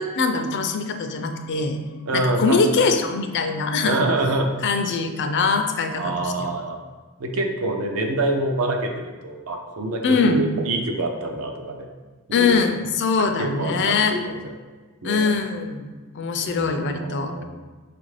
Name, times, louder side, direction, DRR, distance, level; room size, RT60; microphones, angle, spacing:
voice 1, 0.0-1.8 2.1-4.1 4.6-6.5 10.0-10.4 12.3-14.2 15.0-15.9 16.1-17.4, left 4 dB, 55° left, 6 dB, 0.4 m, -22 dB
voice 2, 2.1-2.9 3.8-4.5 5.9-6.8 7.2-11.9 12.3-12.7 13.4-14.4 15.0-15.3 16.4-17.4, right 2 dB, 70° right, 3 dB, 0.6 m, -26 dB
5.8 x 2.5 x 3.2 m, 1.4 s
head